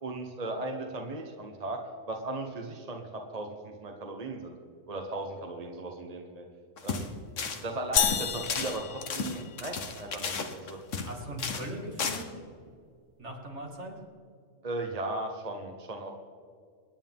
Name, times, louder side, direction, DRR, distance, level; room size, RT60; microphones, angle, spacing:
voice 1, 0.0-1.8 2.1-4.6 4.9-6.4 6.8-7.1 7.6-10.8 14.6-16.1, right 2 dB, 30° right, 2 dB, 1.2 m, -37 dB
sound 1, 6.8-7.1 7.4-7.6 7.9-11.1 11.4-11.7 12.0-12.2, left 5 dB, 75° left, 1.5 m, -34 dB
sound 2, 8.0-9.9, left 8 dB, 55° left, 0.6 m, -30 dB
voice 2, 11.0-12.3 13.2-14.0, right 1 dB, 60° right, 0 dB, 2.6 m, -39 dB
26.5 x 10.0 x 3.7 m, 2.2 s
omnidirectional pair, 1.3 m